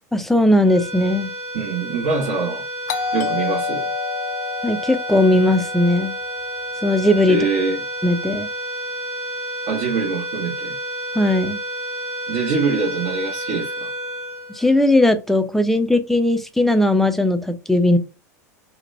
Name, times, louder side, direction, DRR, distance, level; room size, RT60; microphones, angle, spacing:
voice 1, 0.1-1.3 4.6-6.1 6.8-7.4 8.0-8.5 11.1-11.6 14.5-18.0, left 1 dB, 5° left, 0.4 m, -18 dB
sound 1, 0.6-15.2, right 1 dB, 25° right, 0.9 m, -30 dB
voice 2, 1.5-2.6 3.1-3.8 7.3-7.8 9.7-10.8 12.3-13.9, right 4 dB, 55° right, 0.8 m, -24 dB
Doorbell, 2.9-7.5, left 5 dB, 70° left, 0.4 m, -29 dB
2.9 x 2.1 x 2.4 m
hypercardioid pair, 85°, 9 cm